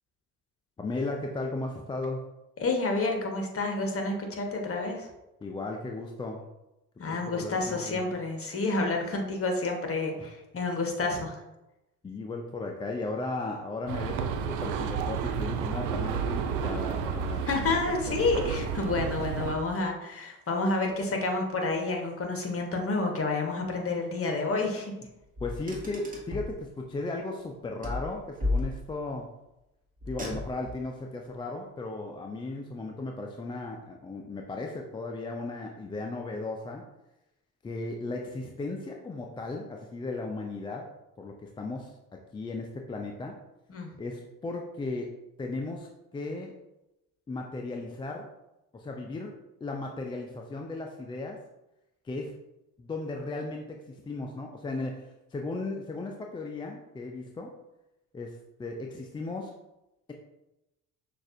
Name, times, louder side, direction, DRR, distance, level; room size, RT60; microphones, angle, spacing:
voice 1, 0.8-2.2 5.4-6.4 7.1-8.1 10.2-10.3 12.0-17.7 18.1-18.2 25.4-29.3 30.1-36.8 37.6-40.9 41.2-43.3 44.0-45.1 45.4-46.6 47.3-48.3 48.7-51.4 52.0-52.4 52.8-57.5 58.1-59.5, left 2 dB, 15° left, 1 dB, 0.3 m, -36 dB
voice 2, 2.6-5.1 7.0-11.4 17.5-24.9 43.7-43.9, left 3 dB, 35° left, 2 dB, 1.1 m, -29 dB
sound 1, 13.9-19.5, right 6 dB, 80° right, 0.5 m, -31 dB
Car, 25.4-26.6 27.8-29.1 30.0-30.8, left 2 dB, 20° right, 1.3 m, -33 dB
6.0 x 2.5 x 2.5 m, 0.93 s
hypercardioid pair, 60°, 42 cm